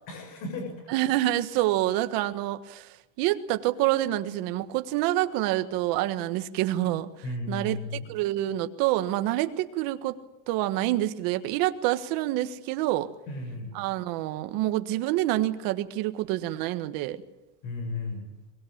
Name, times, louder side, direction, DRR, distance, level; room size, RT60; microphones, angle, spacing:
voice 1, 0.1-0.9 7.2-8.1 13.3-13.7 17.6-18.3, left 2 dB, 40° left, 5 dB, 6.6 m, -34 dB
voice 2, 0.9-7.1 7.5-10.2 10.5-13.1 13.7-17.2, right 15 dB, 45° right, 9 dB, 1.6 m, -27 dB
23.5 x 22.0 x 8.8 m, 0.94 s
supercardioid pair, 165°, 47 cm